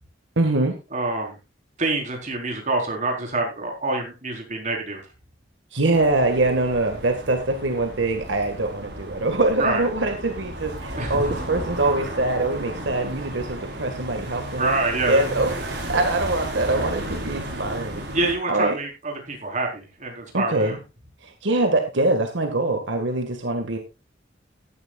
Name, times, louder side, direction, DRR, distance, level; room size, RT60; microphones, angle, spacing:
voice 1, 0.4-0.8 5.7-14.7 15.1-18.0 18.5-18.8 20.3-20.8 21.2-23.8, right 2 dB, 85° right, 5 dB, 1.8 m, -23 dB
voice 2, 0.9-1.4 1.8-5.0 9.6-9.8 11.0-11.2 14.6-15.3 18.1-20.8, right 2 dB, 40° right, 1 dB, 4.2 m, -26 dB
sound 1, 5.9-18.3, right 1 dB, 60° right, 4.7 m, -34 dB
15.5 x 11.0 x 2.4 m, 0.27 s
head